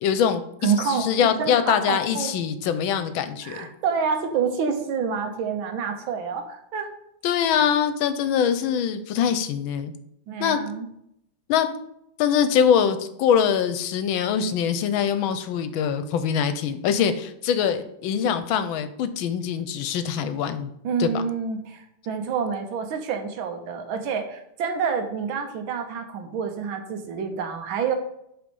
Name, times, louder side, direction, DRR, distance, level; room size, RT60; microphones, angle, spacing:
voice 1, 0.0-3.7 7.2-9.9 10.4-10.6 11.5-11.7 12.2-20.7 21.0-21.2, left 8 dB, 80° left, 11 dB, 1.4 m, -23 dB
voice 2, 0.6-2.3 3.4-6.9 10.3-10.9 20.8-27.9, right 6 dB, 75° right, 5 dB, 1.7 m, -28 dB
7.9 x 4.1 x 5.3 m, 0.77 s
omnidirectional pair, 2.2 m